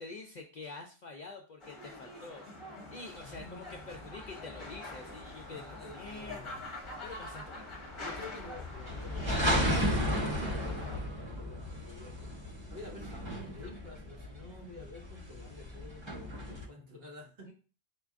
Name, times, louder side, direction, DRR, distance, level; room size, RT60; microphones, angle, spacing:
voice 1, 0.0-2.5 2.9-6.4 7.0-7.7 17.5-17.6, left 3 dB, 55° left, 2 dB, 0.5 m, -47 dB
sound 1, 1.6-11.0, left 2 dB, 30° left, 0.9 m, -46 dB
voice 2, 3.2-4.0 5.4-6.7 8.0-17.5, left 3 dB, 60° right, -1 dB, 1.4 m, -50 dB
sound 2, 3.3-16.7, equal, 30° right, 0.8 m, -35 dB
4.5 x 2.4 x 3.5 m, 0.37 s
omnidirectional pair, 1.2 m